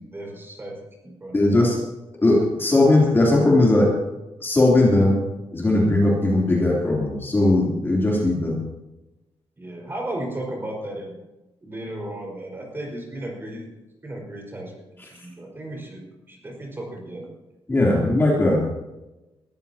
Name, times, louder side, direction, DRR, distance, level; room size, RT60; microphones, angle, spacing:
voice 1, 0.0-1.4 9.6-11.1 11.6-13.7 14.0-14.7 15.1-17.3 17.9-18.2, right 1 dB, 20° right, -1 dB, 5.0 m, -35 dB
voice 2, 1.3-1.8 2.2-3.9 4.4-5.1 5.5-8.6 17.7-18.6, left 2 dB, 20° left, -4 dB, 3.3 m, -18 dB
22.0 x 14.0 x 2.9 m, 1.0 s
wide cardioid pair, 160°, 11 cm